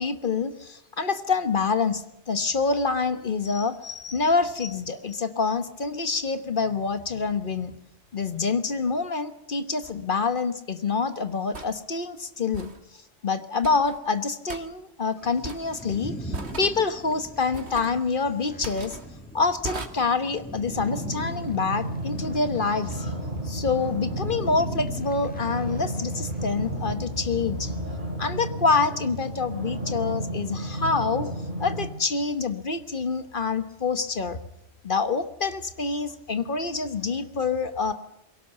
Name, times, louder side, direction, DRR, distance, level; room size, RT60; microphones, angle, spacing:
voice 1, 0.0-7.7 8.1-12.7 13.2-19.0 19.3-27.8 28.2-31.3 31.6-34.4 34.8-37.9, left 4 dB, 50° left, 10 dB, 1.4 m, -26 dB
sound 1, 9.8-10.0 11.5-11.7 12.5-12.8 13.6-14.0 14.5-14.6 15.4-15.8 16.3-16.8 17.5-18.0 18.6-19.0 19.6-19.9, right 3 dB, 75° right, 2.0 m, -37 dB
sound 2, 15.2-27.0, equal, 10° left, 1.7 m, -41 dB
sound 3, 20.7-31.9, right 1 dB, 50° right, 4.6 m, -33 dB
21.5 x 18.0 x 7.9 m, 0.79 s
omnidirectional pair, 1.1 m